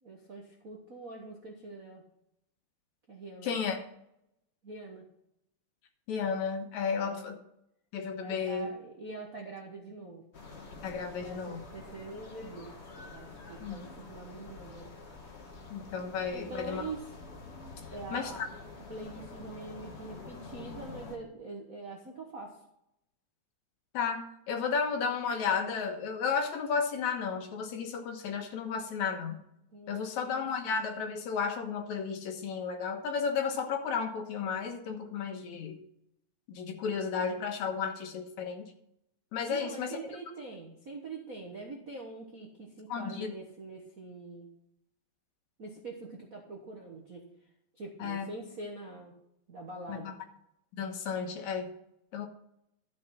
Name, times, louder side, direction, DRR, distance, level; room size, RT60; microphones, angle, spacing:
voice 1, 0.0-2.0 3.1-3.5 4.6-5.0 7.0-7.2 8.2-10.2 11.2-12.7 13.0-14.9 15.3-15.4 16.3-17.0 17.9-18.5 18.9-22.6 29.7-30.9 39.5-44.5 45.6-47.2 47.7-49.1 49.5-50.1, right 3 dB, 50° right, 0 dB, 1.0 m, -44 dB
voice 2, 3.4-3.8 6.1-7.4 7.9-8.7 10.8-11.6 13.6-13.8 15.7-16.8 18.1-18.3 23.9-29.4 29.9-35.8 36.5-38.7 39.3-40.0 42.9-43.3 48.0-48.3 49.9-50.1 50.8-51.7 52.1-52.3, left 6 dB, 70° left, 4 dB, 2.5 m, -33 dB
sound 1, 10.3-21.2, left 3 dB, 45° left, 0.8 m, -47 dB
12.5 x 5.8 x 5.8 m, 0.78 s
omnidirectional pair, 3.5 m